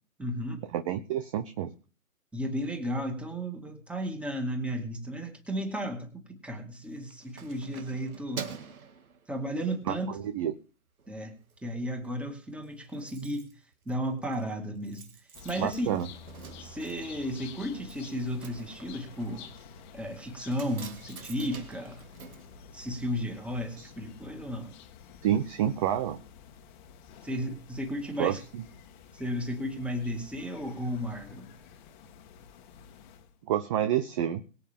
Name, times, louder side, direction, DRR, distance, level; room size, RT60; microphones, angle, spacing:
voice 1, 0.2-0.6 2.3-8.5 9.3-10.1 11.1-11.3 11.6-13.5 13.9-15.0 15.4-15.9 16.6-19.5 19.9-22.0 22.7-24.7 27.2-28.4 29.1-31.5, equal, 5° right, 4 dB, 2.2 m, -34 dB
voice 2, 0.7-1.7 9.9-10.5 15.6-16.1 23.8-23.9 25.2-26.2 28.2-28.6 33.5-34.4, right 10 dB, 25° right, 10 dB, 0.7 m, -29 dB
Keys jangling, 6.8-9.8 10.3-10.5 10.9-11.6 11.8-11.9 12.2-12.3 12.5-23.3 23.6-23.7, right 6 dB, 80° right, 2.2 m, -47 dB
sound 1, 15.3-33.4, left 6 dB, 30° left, 1.7 m, -50 dB
23.0 x 8.4 x 3.7 m, 0.38 s
hypercardioid pair, 140°, 42 cm